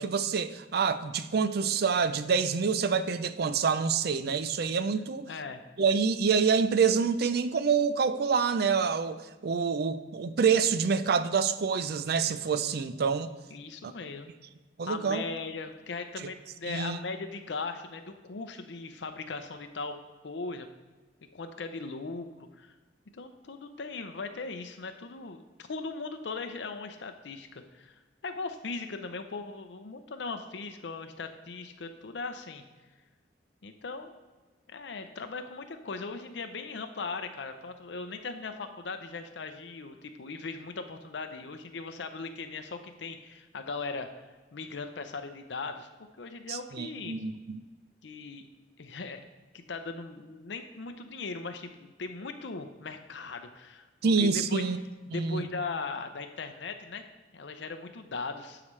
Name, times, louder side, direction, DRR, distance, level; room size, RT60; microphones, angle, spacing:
voice 1, 0.0-5.3 5.8-13.3 13.8-13.9 14.8-15.2 16.2-16.3 16.7-17.0 46.5-47.6 54.0-54.8 55.1-55.5, right 5 dB, 60° right, 13 dB, 0.4 m, -27 dB
voice 2, 5.3-5.6 13.5-14.3 14.9-20.0 20.2-20.7 21.3-22.3 22.6-22.7 23.1-25.4 25.7-27.9 28.2-32.6 33.6-34.1 34.7-44.1 44.5-45.9 46.2-47.2 48.0-48.5 48.8-49.2 49.7-54.6 55.1-57.0 57.3-58.6, left 4 dB, 80° left, 7 dB, 0.6 m, -38 dB
12.5 x 4.9 x 3.2 m, 1.3 s
head